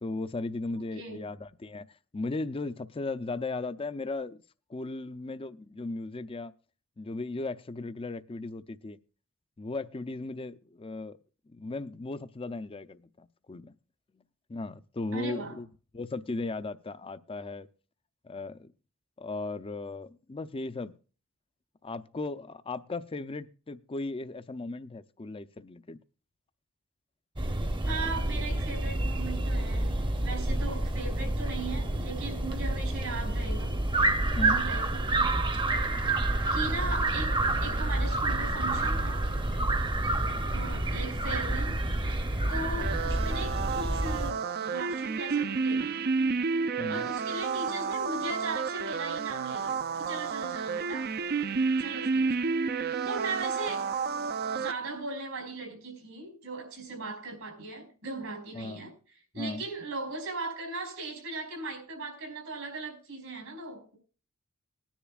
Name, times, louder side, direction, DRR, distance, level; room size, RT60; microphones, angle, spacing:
voice 1, 0.0-1.8 2.1-4.4 4.7-6.5 7.0-9.0 9.6-11.2 11.5-13.7 14.5-15.7 15.9-17.7 18.2-18.7 19.2-20.9 21.8-26.0 34.3-34.6 46.8-47.0 58.5-58.8 59.3-59.6, left 3 dB, 25° left, 0.5 m, -36 dB
voice 2, 0.7-1.2 15.1-15.6 27.8-33.8 34.4-35.3 36.5-39.3 40.5-41.8 42.5-46.1 46.9-51.1 51.8-53.9 54.2-58.9 59.3-64.0, right 3 dB, 85° right, 4.9 m, -38 dB
sound 1, 27.4-44.3, right 2 dB, 25° right, 0.8 m, -28 dB
sound 2, 42.8-54.7, right 5 dB, 50° right, 0.5 m, -30 dB
20.0 x 10.0 x 2.4 m
head